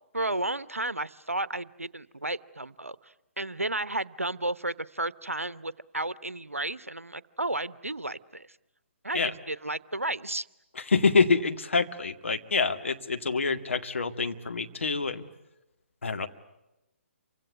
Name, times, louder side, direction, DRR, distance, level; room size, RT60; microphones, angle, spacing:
voice 1, 0.1-8.6 9.0-10.5, right 2 dB, 85° right, 17 dB, 0.9 m, -33 dB
voice 2, 10.8-15.2 16.0-16.3, left 4 dB, 65° left, 6 dB, 2.0 m, -26 dB
28.5 x 25.0 x 8.1 m, 0.94 s
figure-of-eight pair, 135°, 7 cm